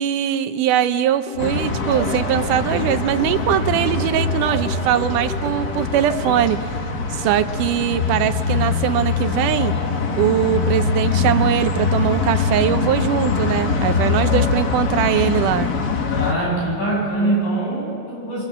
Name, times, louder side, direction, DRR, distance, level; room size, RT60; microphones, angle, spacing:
voice 1, 0.0-6.6 7.1-9.7 10.1-15.7, right 11 dB, 80° right, 10 dB, 2.2 m, -21 dB
sound 1, 1.3-9.2, right 6 dB, 35° left, 3.1 m, -36 dB
sound 2, 1.3-6.4, right 1 dB, 50° right, 0.7 m, -33 dB
sound 3, 1.4-16.3, left 5 dB, 55° left, 1.1 m, -23 dB
voice 2, 16.1-18.4, right 2 dB, 70° left, -4 dB, 9.2 m, -23 dB
26.5 x 23.5 x 7.3 m, 2.4 s
omnidirectional pair, 3.8 m